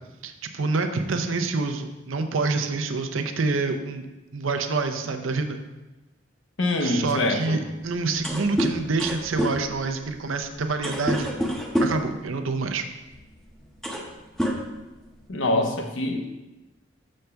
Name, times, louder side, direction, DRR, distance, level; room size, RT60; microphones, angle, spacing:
voice 1, 0.2-4.0 4.3-5.6 6.8-11.3 11.8-12.8, right 3 dB, 90° right, 6 dB, 0.6 m, -27 dB
voice 2, 6.6-7.6 15.3-16.2, left 2 dB, 80° left, 4 dB, 0.9 m, -24 dB
sound 1, 7.8-7.9 8.1-12.1 13.1-13.3 13.6-14.1 14.4-15.3, equal, ahead, 0.6 m, -28 dB
6.8 x 6.5 x 3.4 m, 1.1 s
head